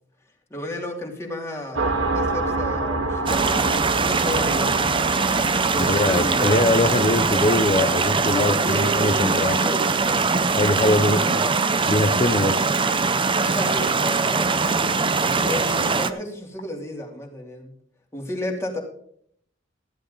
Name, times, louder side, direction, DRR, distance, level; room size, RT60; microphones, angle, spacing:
voice 1, 0.5-4.7 5.7-6.6 8.3-10.3 10.9-11.6 13.3-14.5 15.2-17.7 18.1-18.8, left 1 dB, 15° left, 0 dB, 2.9 m, -32 dB
sound 1, 1.8-11.0, right 2 dB, 75° right, 1.8 m, -29 dB
sound 2, 3.3-16.1, right 4 dB, 25° right, 0.7 m, -22 dB
voice 2, 5.9-9.6 10.5-11.4 11.9-12.6, left 2 dB, 35° left, 6 dB, 0.7 m, -22 dB
14.0 x 11.5 x 3.9 m, 0.63 s
head